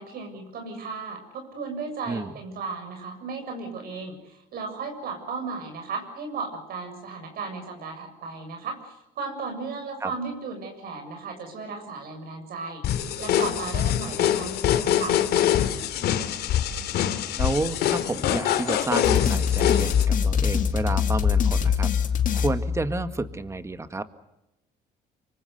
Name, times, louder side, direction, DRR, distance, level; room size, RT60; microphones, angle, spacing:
voice 1, 0.0-15.2, right 4 dB, 65° right, 5 dB, 7.1 m, -35 dB
voice 2, 2.1-2.4 10.0-10.1 17.3-21.9 22.3-24.1, right 3 dB, 15° right, 10 dB, 1.8 m, -30 dB
sound 1, 12.8-20.0, left 10 dB, 70° left, 2.6 m, -24 dB
sound 2, 19.0-23.3, left 7 dB, 50° left, 2.6 m, -23 dB
26.0 x 24.5 x 6.8 m, 0.88 s
cardioid pair, 110°, 17 cm